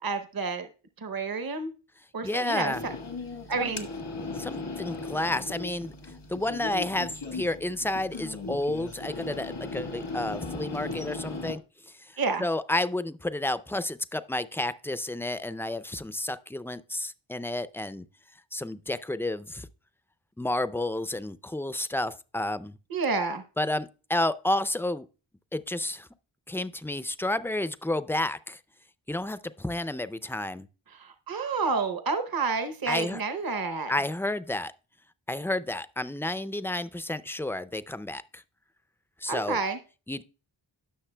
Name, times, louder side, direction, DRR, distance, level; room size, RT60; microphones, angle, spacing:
voice 1, 0.0-0.7 1.0-1.7 2.1-2.9 3.5-3.9 12.2-12.4 22.9-23.4 30.9-33.9 39.3-39.8, right 4 dB, 50° right, 0.8 m, -29 dB
voice 2, 2.2-2.8 3.6-3.7 4.4-5.9 6.3-18.1 18.5-19.7 20.4-22.8 23.6-25.1 25.5-26.1 26.5-28.6 29.1-30.7 32.9-33.2 33.9-34.7 35.3-38.4 39.2-39.6 40.1-40.2, left 1 dB, 5° left, 0.4 m, -31 dB
sound 1, 2.7-11.6, left 3 dB, 85° left, 1.4 m, -37 dB
16.0 x 6.5 x 2.2 m
wide cardioid pair, 55°, 47 cm